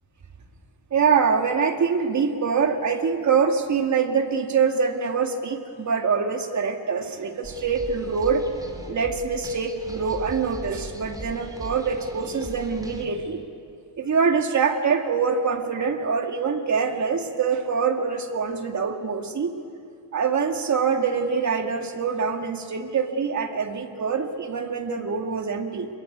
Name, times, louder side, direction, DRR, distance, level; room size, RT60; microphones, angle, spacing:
voice 1, 0.9-8.5 8.9-13.4 14.0-19.6 20.1-25.9, right 5 dB, 35° right, 4 dB, 2.3 m, -24 dB
sound 1, 7.4-13.1, right 1 dB, 10° right, 3.3 m, -39 dB
26.5 x 23.0 x 9.5 m, 2.6 s
cardioid pair, 145°, 47 cm